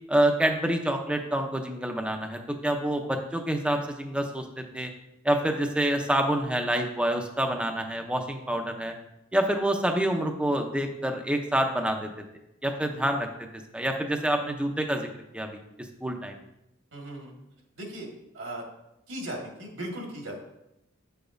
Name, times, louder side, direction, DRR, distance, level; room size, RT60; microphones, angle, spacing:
voice 1, 0.1-4.9 5.2-8.9 9.3-12.1 12.6-13.3 13.7-15.1 15.3-15.6 16.0-16.4, right 1 dB, 5° right, 4 dB, 0.6 m, -27 dB
voice 2, 16.9-17.3 17.8-18.1 18.3-18.7 19.1-20.4, right 1 dB, 70° right, 0 dB, 1.7 m, -37 dB
8.8 x 6.9 x 2.6 m, 0.87 s
head